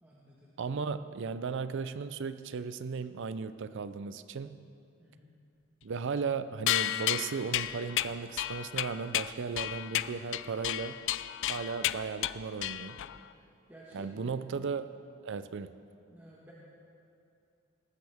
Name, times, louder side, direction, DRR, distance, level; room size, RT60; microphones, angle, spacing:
voice 1, 0.0-0.5 5.0-5.3 12.9-13.1 13.7-14.4 16.1-16.5, right 1 dB, 10° right, -7 dB, 1.5 m, -54 dB
voice 2, 0.6-4.6 5.8-11.0 11.5-13.0 13.9-14.9 15.2-15.8, right 5 dB, 60° right, 13 dB, 0.5 m, -36 dB
sound 1, 6.7-13.2, left 13 dB, 60° left, 0.4 m, -33 dB
18.5 x 14.5 x 3.5 m, 2.6 s
head